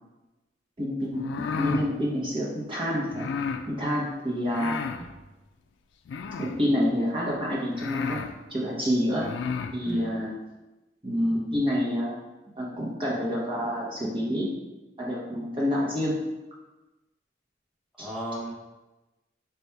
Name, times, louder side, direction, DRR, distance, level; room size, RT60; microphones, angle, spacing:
voice 1, 0.8-1.2 1.5-4.8 6.4-8.2 8.5-9.3 9.7-10.3 11.0-12.2 12.5-14.5 15.0-16.1 18.0-18.1, equal, 30° right, -6 dB, 0.8 m, -28 dB
sound 1, 1.1-1.9 3.1-3.7 4.5-5.1 6.1-6.7 7.3-7.4 7.8-8.3 9.1-9.8, left 5 dB, 70° left, 0.3 m, -32 dB
voice 2, 9.8-10.1 18.0-18.5, right 1 dB, ahead, -8 dB, 0.9 m, -35 dB
4.0 x 2.3 x 4.5 m, 1.1 s
head